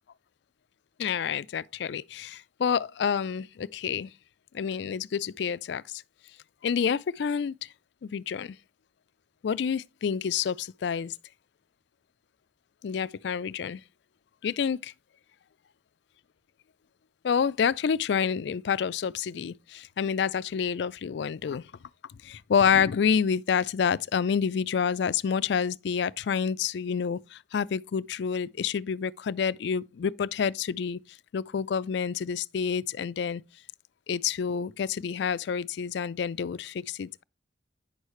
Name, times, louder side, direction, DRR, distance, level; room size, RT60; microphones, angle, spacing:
voice 1, 1.0-4.1 4.5-6.0 6.6-7.7 8.0-8.6 9.4-11.1 12.8-13.8 14.4-14.9 17.2-21.6 22.2-31.0 31.3-33.4 34.1-37.2, left 7 dB, 65° left, 0.3 m, -28 dB
9.1 x 6.4 x 3.1 m
head